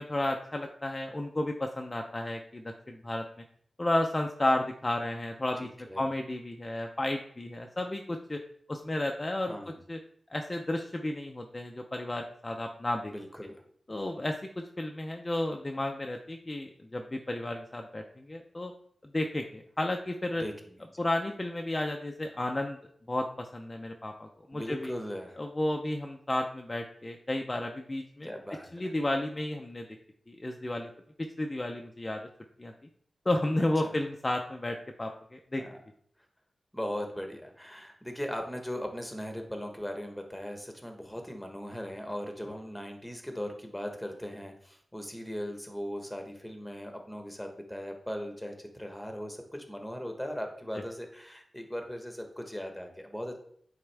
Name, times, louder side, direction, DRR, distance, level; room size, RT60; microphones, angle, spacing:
voice 1, 0.0-3.2 3.8-5.7 6.0-8.4 8.7-9.5 9.9-10.0 10.3-13.1 13.9-18.7 19.1-20.4 21.0-22.8 23.1-24.9 25.4-28.3 28.7-29.9 30.3-30.9 31.4-32.2 32.6-32.7 33.3-35.6, left 1 dB, 30° left, 3 dB, 0.5 m, -32 dB
voice 2, 5.5-6.0 9.5-9.8 13.1-13.5 20.3-21.0 24.5-25.4 28.2-28.9 33.8-33.9 35.5-35.8 36.7-53.4, equal, 5° left, 4 dB, 1.2 m, -39 dB
8.5 x 3.6 x 3.4 m, 0.64 s
wide cardioid pair, 75°, 0 cm